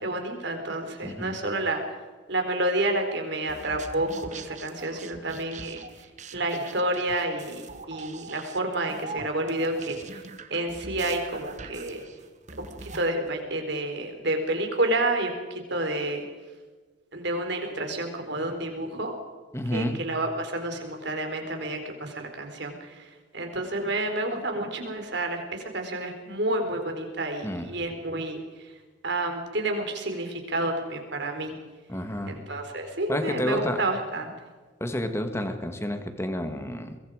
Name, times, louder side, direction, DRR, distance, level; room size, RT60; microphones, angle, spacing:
voice 1, 0.0-1.8 2.3-5.8 6.3-7.6 7.9-10.2 10.5-12.0 12.6-16.2 17.1-19.1 19.7-28.7 29.0-31.5 32.3-34.3, right 2 dB, 60° right, 4 dB, 4.3 m, -29 dB
voice 2, 1.0-1.4 19.5-20.0 27.4-27.8 31.9-32.4 33.1-33.8 34.8-37.0, left 1 dB, 15° left, 7 dB, 1.9 m, -30 dB
sound 1, 3.5-13.1, right 4 dB, 35° right, 1.4 m, -43 dB
23.5 x 23.0 x 5.0 m, 1.4 s
head